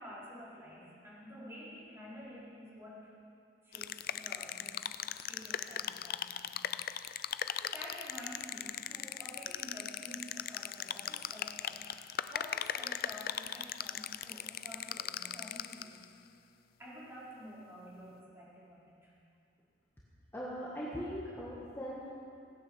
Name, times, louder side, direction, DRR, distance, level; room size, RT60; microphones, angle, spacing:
voice 1, 0.0-3.1 3.6-6.6 7.3-16.0 16.8-19.1, equal, 15° right, -9 dB, 5.0 m, -50 dB
sound 1, 3.7-16.0, left 10 dB, 55° left, 0.4 m, -39 dB
voice 2, 20.3-22.1, equal, 15° left, -6 dB, 1.7 m, -40 dB
17.0 x 10.0 x 7.1 m, 2.5 s
head